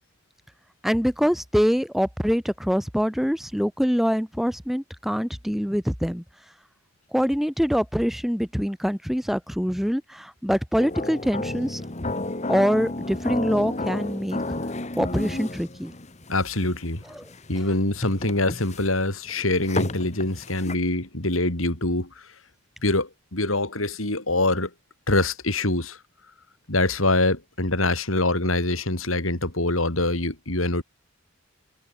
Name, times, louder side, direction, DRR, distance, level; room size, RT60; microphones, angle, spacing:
voice 1, 0.8-6.2 7.1-11.8 12.5-14.4 14.9-15.9, equal, ahead, 2.1 m, -24 dB
sound 1, 10.8-20.8, left 2 dB, 35° left, 1.7 m, -32 dB
voice 2, 16.3-17.0 17.5-22.3 22.8-24.7 25.1-26.0 26.7-30.8, left 2 dB, 85° left, 5.9 m, -24 dB
head